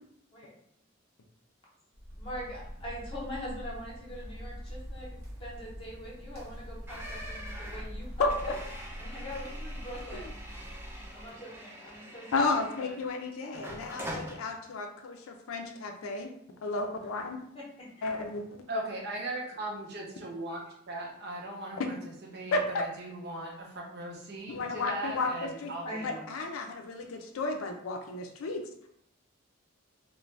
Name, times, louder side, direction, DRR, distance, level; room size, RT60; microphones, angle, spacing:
sound 1, 1.9-11.3, equal, 85° right, 0.9 m, -43 dB
voice 1, 2.2-5.1 5.4-8.6 9.0-10.4 11.1-12.9 17.5-18.2 25.8-26.1, equal, 25° left, -6 dB, 0.7 m, -43 dB
sound 2, 6.9-13.1 13.5-14.4, equal, 10° right, 0.5 m, -44 dB
voice 2, 12.3-16.3 16.6-17.4 18.0-18.4 21.8-21.9 22.5-22.8 24.5-25.7 26.0-28.6, left 3 dB, 80° left, 4 dB, 0.4 m, -32 dB
voice 3, 18.7-21.9 22.3-26.2, right 1 dB, 50° right, -1 dB, 0.6 m, -38 dB
2.5 x 2.1 x 3.1 m, 0.69 s
head